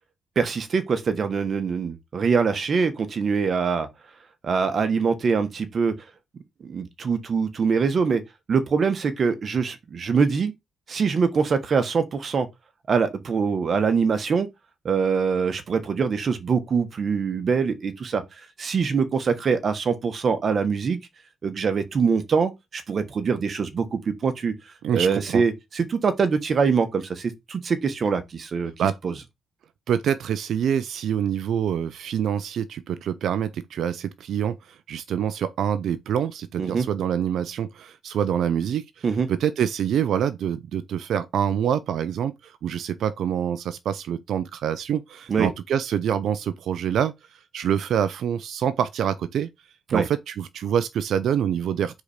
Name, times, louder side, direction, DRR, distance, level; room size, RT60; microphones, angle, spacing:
voice 1, 0.3-3.9 4.4-5.9 6.6-8.2 8.5-10.5 10.9-12.5 12.9-14.5 14.8-18.2 18.6-21.0 21.4-24.5 24.9-28.7 29.0-29.1 36.6-36.9 39.0-39.3 45.3-45.5 49.9-50.0, right 5 dB, 40° right, 1.3 m, -23 dB
voice 2, 24.8-25.4 28.8-29.0 29.9-49.5 49.9-52.0, right 9 dB, 70° right, 0.5 m, -26 dB
4.9 x 4.1 x 5.0 m
cardioid pair, 120°, 0 cm